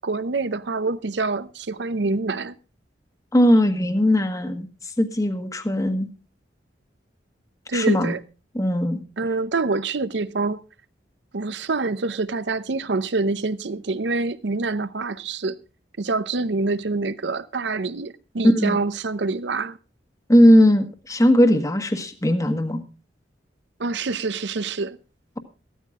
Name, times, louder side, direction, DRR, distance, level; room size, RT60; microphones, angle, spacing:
voice 1, 0.0-2.5 7.7-8.2 9.2-10.6 11.3-15.6 16.0-19.8 23.8-25.0, right 3 dB, 70° right, 0.7 m, -26 dB
voice 2, 3.3-4.7 5.0-6.1 7.7-8.1 8.5-9.0 18.5-18.8 20.3-22.8, equal, 20° left, 1.3 m, -18 dB
15.0 x 13.0 x 3.6 m
head